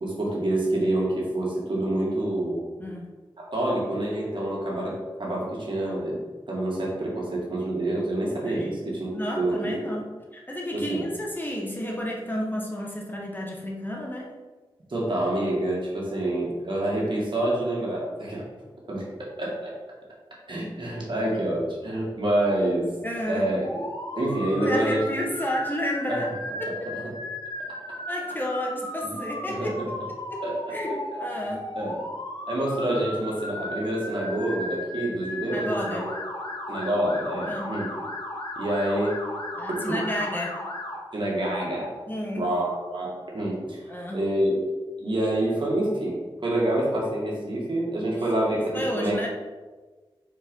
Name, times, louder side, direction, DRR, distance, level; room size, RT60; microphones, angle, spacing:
voice 1, 0.0-2.7 3.4-6.2 6.5-9.1 9.4-10.0 10.7-11.1 14.9-18.4 18.9-19.7 20.5-22.9 23.3-23.7 24.1-25.0 26.1-26.2 27.7-27.8 29.5-29.9 30.4-30.8 31.4-32.0 32.5-36.1 36.7-37.9 38.6-39.2 39.9-40.0 41.1-42.0 42.4-44.6 45.0-49.3, right 1 dB, 55° right, -4 dB, 2.1 m, -27 dB
voice 2, 2.8-3.1 8.4-8.7 9.1-14.3 23.0-23.5 24.5-26.3 26.6-26.7 28.1-31.6 35.5-36.2 37.5-37.8 39.5-40.6 42.1-42.5 43.9-44.3 48.0-48.3 48.7-49.3, equal, 20° left, -1 dB, 1.3 m, -31 dB
Motor vehicle (road) / Siren, 23.6-41.0, left 1 dB, 45° left, 1.5 m, -36 dB
4.7 x 4.5 x 5.4 m, 1.3 s
cardioid pair, 55°, 10 cm